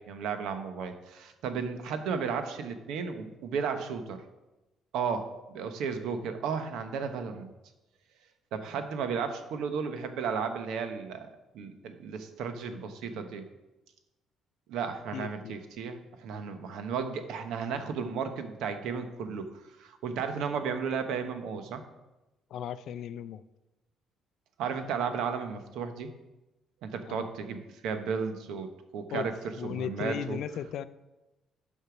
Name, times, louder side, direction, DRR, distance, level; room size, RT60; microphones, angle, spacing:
voice 1, 0.0-4.2 4.9-7.5 8.5-11.3 11.5-13.5 14.7-19.5 19.8-21.8 24.6-26.1 26.8-29.3 29.6-30.4, right 6 dB, 75° right, 8 dB, 1.0 m, -34 dB
voice 2, 15.1-15.5 22.5-23.4 27.0-27.3 29.1-29.3 29.6-30.9, left 9 dB, 60° left, 14 dB, 0.4 m, -36 dB
8.2 x 5.5 x 5.9 m, 1.0 s
cardioid pair, 150°, 0 cm